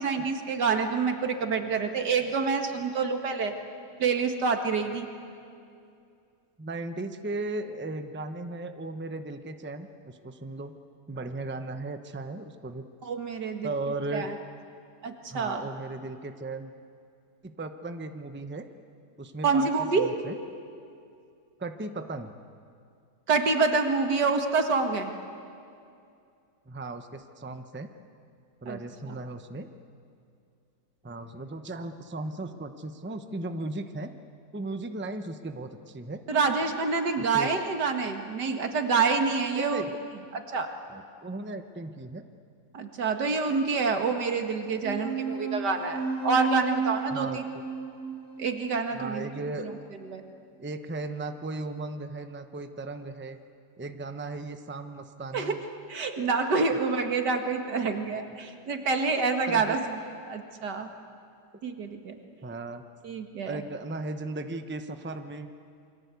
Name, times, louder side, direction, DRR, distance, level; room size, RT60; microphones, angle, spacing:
voice 1, 0.0-3.5 4.0-5.1 13.0-13.8 14.1-14.4 15.0-15.6 19.4-20.1 23.3-25.1 28.7-28.8 29.0-29.1 36.3-39.8 40.3-40.7 42.7-47.5 48.4-49.3 49.6-49.8 50.1-50.2 55.3-55.6 55.9-60.0 60.3-60.9 61.6-62.2 63.0-63.6, right 4 dB, 90° right, 5 dB, 2.4 m, -27 dB
voice 2, 6.6-10.7 11.1-12.8 13.6-14.3 15.3-16.7 17.4-18.7 19.2-19.7 20.0-20.4 21.6-22.3 26.7-27.9 28.6-29.7 31.0-34.1 34.5-36.2 37.2-37.6 39.5-39.9 40.9-42.2 47.1-47.4 48.9-49.7 50.6-53.4 53.8-55.6 59.5-59.8 62.4-62.8 63.4-65.5, right 2 dB, 10° right, 8 dB, 0.7 m, -36 dB
sound 1, 44.8-49.8, right 5 dB, 55° left, 6.5 m, -33 dB
28.5 x 23.0 x 8.3 m, 2.5 s
omnidirectional pair, 1.7 m